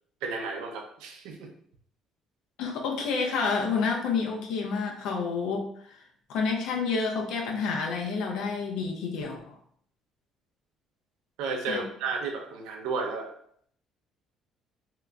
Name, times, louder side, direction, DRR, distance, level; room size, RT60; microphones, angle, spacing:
voice 1, 0.2-1.5 11.4-13.3, right 4 dB, 85° right, 2 dB, 0.6 m, -33 dB
voice 2, 2.6-6.0 6.3-9.6 11.7-11.9, left 5 dB, 80° left, 1 dB, 0.8 m, -29 dB
2.9 x 2.5 x 3.4 m, 0.65 s
cardioid pair, 95°, 0 cm